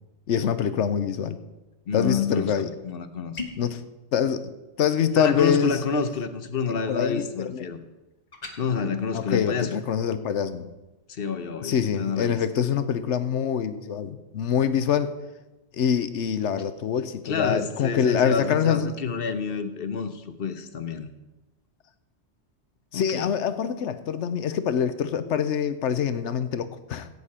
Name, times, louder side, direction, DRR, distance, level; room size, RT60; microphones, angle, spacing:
voice 1, 0.3-1.4 1.9-2.7 3.6-3.8 4.1-4.5 4.8-5.8 6.7-7.6 9.1-10.7 11.6-15.2 15.7-18.9 22.9-27.1, left 8 dB, 80° left, 12 dB, 1.0 m, -25 dB
voice 2, 1.9-3.4 5.2-7.8 8.6-9.7 11.1-12.4 17.2-21.1 22.9-23.3, left 5 dB, 55° left, 10 dB, 1.1 m, -28 dB
sound 1, 3.3-3.7 8.3-8.6, left 3 dB, 35° left, 1.3 m, -35 dB
15.5 x 8.4 x 4.2 m, 1.0 s
omnidirectional pair, 1.2 m